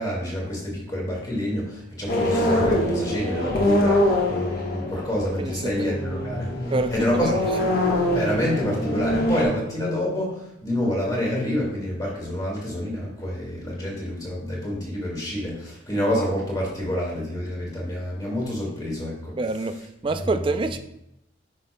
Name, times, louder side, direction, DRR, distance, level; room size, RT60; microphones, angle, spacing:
voice 1, 0.0-6.5 6.9-7.4 8.1-19.4 20.1-20.3, equal, 20° left, -4 dB, 1.8 m, -27 dB
sound 1, 2.1-9.4, left 1 dB, 50° left, 1.2 m, -24 dB
voice 2, 5.4-5.9 6.7-7.2 19.4-19.8 20.0-20.8, right 3 dB, 25° right, 8 dB, 0.3 m, -26 dB
9.6 x 5.3 x 2.2 m, 0.81 s
head